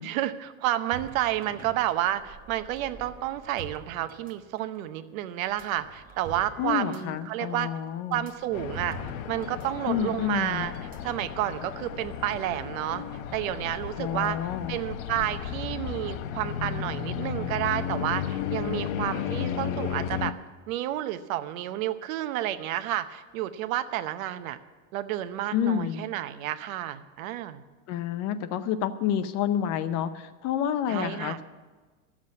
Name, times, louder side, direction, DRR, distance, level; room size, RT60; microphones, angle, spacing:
voice 1, 0.0-7.7 8.1-9.0 9.3-10.7 11.0-13.0 13.3-14.4 14.7-20.3 20.7-24.6 24.9-27.6 30.9-31.4, right 13 dB, 75° right, 11 dB, 0.9 m, -30 dB
sound 1, 0.9-4.8 5.4-9.7 9.9-10.1 10.7-11.6, right 4 dB, 20° right, 0.9 m, -46 dB
voice 2, 6.6-8.2 9.8-10.7 14.0-14.8 25.5-26.0 27.9-31.4, left 9 dB, 40° left, 12 dB, 0.7 m, -29 dB
sound 2, 8.5-20.3, left 9 dB, 80° left, 0.9 m, -34 dB
12.5 x 7.5 x 8.5 m, 1.3 s
supercardioid pair, 155°, 41 cm